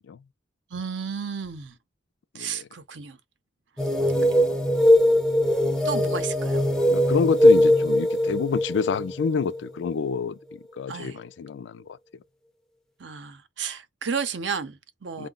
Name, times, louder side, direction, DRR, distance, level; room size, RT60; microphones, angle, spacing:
voice 1, 0.7-1.7 2.3-3.2 4.3-4.8 5.8-6.6 10.9-11.2 13.0-15.3, right 6 dB, 75° right, 0.7 m, -33 dB
voice 2, 2.3-2.7 6.9-12.0 15.2-15.3, left 6 dB, 75° left, 0.3 m, -28 dB
sound 1, 3.8-10.2, left 1 dB, 5° left, 0.4 m, -21 dB
4.7 x 2.1 x 3.8 m
head